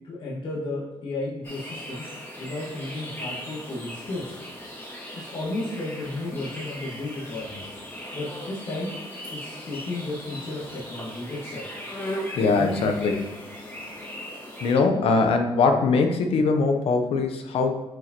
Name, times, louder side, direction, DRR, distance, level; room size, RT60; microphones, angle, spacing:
voice 1, 0.0-2.0 2.4-4.3 5.2-7.6 8.1-8.9 9.3-11.6 12.6-12.8, left 2 dB, 60° left, -6 dB, 1.8 m, -33 dB
sound 1, 1.4-14.7, equal, 25° left, 2.2 m, -38 dB
voice 2, 12.4-13.2 14.6-17.8, left 4 dB, 85° left, 5 dB, 0.8 m, -22 dB
7.6 x 4.9 x 3.0 m, 1.1 s
cardioid pair, 100°, 10 cm